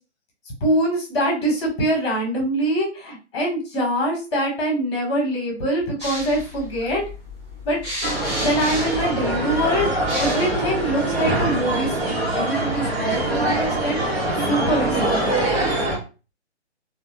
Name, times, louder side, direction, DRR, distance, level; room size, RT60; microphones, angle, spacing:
voice 1, 0.6-7.0 7.6-7.8 8.4-9.9 10.2-15.4, right 1 dB, 25° left, -1 dB, 1.3 m, -24 dB
sound 1, 6.0-11.6, left 1 dB, 10° right, 1.0 m, -33 dB
sound 2, 8.0-16.0, right 1 dB, 60° right, 1.5 m, -23 dB
3.6 x 2.6 x 2.8 m, 0.32 s
figure-of-eight pair, 140°, 35 cm